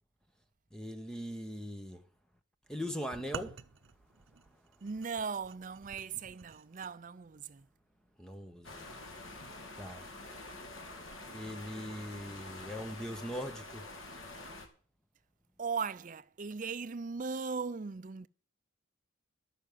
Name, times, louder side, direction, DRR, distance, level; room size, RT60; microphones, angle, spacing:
voice 1, 0.7-2.0 2.7-3.6 8.2-8.9 9.8-10.1 11.3-13.9, equal, 5° left, 0.9 m, -40 dB
sound 1, 3.1-6.9, right 5 dB, 75° right, 0.7 m, -48 dB
voice 2, 4.8-7.7 15.6-18.3, right 5 dB, 40° right, 0.5 m, -38 dB
sound 2, 8.6-14.7, left 2 dB, 75° left, 2.2 m, -47 dB
12.0 x 6.6 x 9.2 m
head